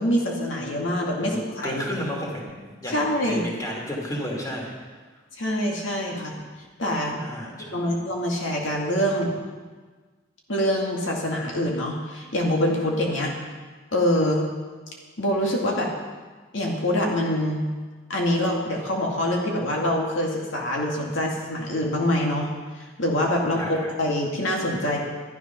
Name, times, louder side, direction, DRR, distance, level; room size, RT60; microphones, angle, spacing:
voice 1, 0.0-1.8 2.9-3.4 5.4-6.3 6.8-7.2 7.7-9.3 10.5-13.3 13.9-14.5 15.2-15.9 16.5-17.6 18.1-25.0, left 1 dB, 80° left, -1 dB, 2.2 m, -25 dB
voice 2, 1.2-4.7 7.2-7.9 13.1-13.3 23.6-23.9, equal, 15° left, -2 dB, 2.7 m, -33 dB
13.0 x 11.0 x 5.8 m, 1.4 s
head